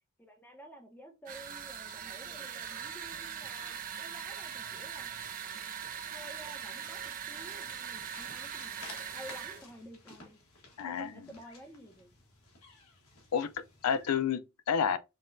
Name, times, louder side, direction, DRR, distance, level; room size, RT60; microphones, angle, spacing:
voice 1, 0.2-5.1 6.1-8.8 9.1-10.4 10.9-12.1, equal, 10° left, 0.7 m, -51 dB
sound 1, 1.3-9.6, right 8 dB, 40° right, 0.4 m, -41 dB
sound 2, 6.0-14.3, left 3 dB, 75° left, 1.4 m, -55 dB
voice 2, 10.8-11.1 13.3-15.0, left 7 dB, 90° left, 0.4 m, -30 dB
5.6 x 2.2 x 2.5 m
head